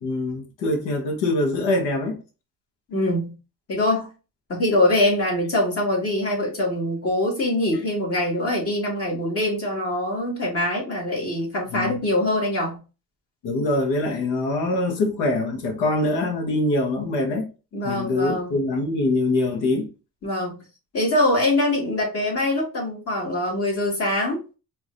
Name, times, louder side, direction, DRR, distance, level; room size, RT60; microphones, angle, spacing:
voice 1, 0.0-2.2 11.7-12.0 13.4-17.5 17.8-19.9, left 2 dB, 75° left, 1.3 m, -24 dB
voice 2, 2.9-3.3 3.7-4.1 4.5-12.8 17.7-18.6 20.2-20.6 20.9-24.4, left 1 dB, 35° left, 2.3 m, -23 dB
4.7 x 2.9 x 2.6 m
cardioid pair, 115°, 41 cm